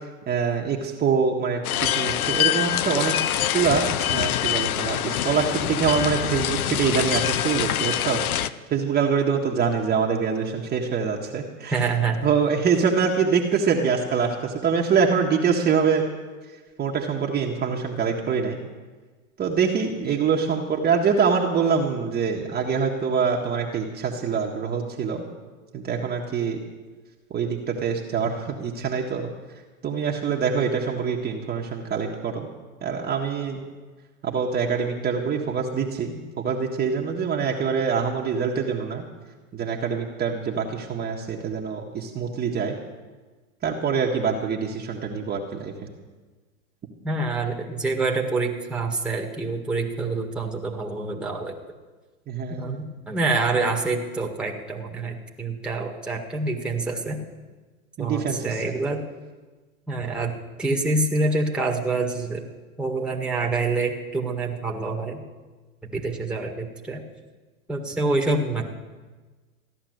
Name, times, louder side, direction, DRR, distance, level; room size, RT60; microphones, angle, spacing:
voice 1, 0.3-3.2 3.5-11.8 12.2-16.0 16.8-18.6 19.4-25.2 25.7-26.6 27.3-29.3 29.8-32.5 32.8-33.6 34.2-39.0 39.5-42.8 43.6-45.7 52.3-52.8 58.0-58.7, right 6 dB, 20° right, -1 dB, 1.6 m, -25 dB
sound 1, 1.6-8.5, left 12 dB, 85° left, 0.8 m, -25 dB
voice 2, 11.7-12.3 47.0-51.6 52.6-57.2 58.0-59.0 59.9-62.4 62.8-65.2 65.9-67.0 67.7-68.6, right 3 dB, ahead, 0 dB, 1.8 m, -26 dB
15.0 x 11.0 x 7.9 m, 1.3 s
hypercardioid pair, 125°, 42 cm